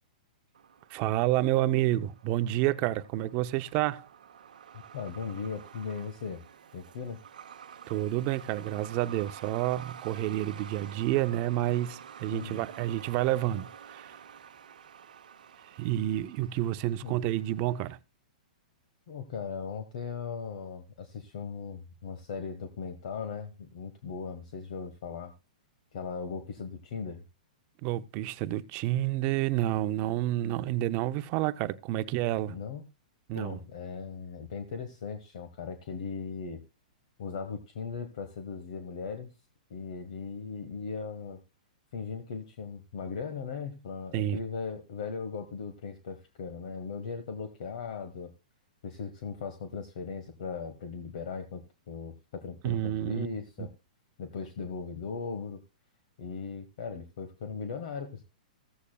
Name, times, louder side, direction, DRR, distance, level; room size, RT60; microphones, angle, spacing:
Truck, 0.5-18.0, right 8 dB, 80° right, 0.8 m, -49 dB
voice 1, 0.9-4.1 7.9-14.2 15.8-18.0 27.8-32.6 33.3-33.6 44.1-44.4 52.6-53.3 53.6-53.7, right 14 dB, 40° right, 0.6 m, -29 dB
voice 2, 4.9-6.4 6.7-7.2 12.3-12.6 17.0-17.2 19.1-25.3 25.9-27.2 32.5-32.8 33.3-36.6 37.2-39.3 39.7-41.4 41.9-48.3 48.8-53.7 54.2-55.6 56.2-58.2, left 5 dB, 65° left, 1.4 m, -38 dB
15.5 x 8.4 x 2.3 m
hypercardioid pair, 135°, 4 cm